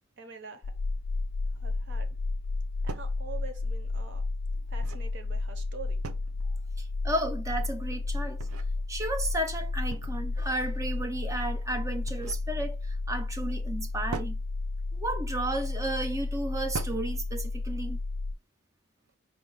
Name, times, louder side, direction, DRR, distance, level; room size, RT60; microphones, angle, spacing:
voice 1, 0.2-0.8 1.5-2.2 2.8-4.3 4.7-6.2, right 4 dB, 55° right, 0.8 m, -45 dB
sound 1, 0.6-18.3, left 3 dB, 65° left, 0.3 m, -32 dB
sound 2, 2.4-2.5 2.9-3.2 4.5-5.1 6.0-6.5 8.1-8.7 9.9-10.4 11.8-12.5 14.1-14.4 15.5-15.8 16.7-17.1, right 5 dB, 80° right, 0.5 m, -41 dB
voice 2, 6.8-8.4 8.9-14.4 14.9-18.0, right 1 dB, 15° right, 0.5 m, -33 dB
4.6 x 2.3 x 3.8 m
head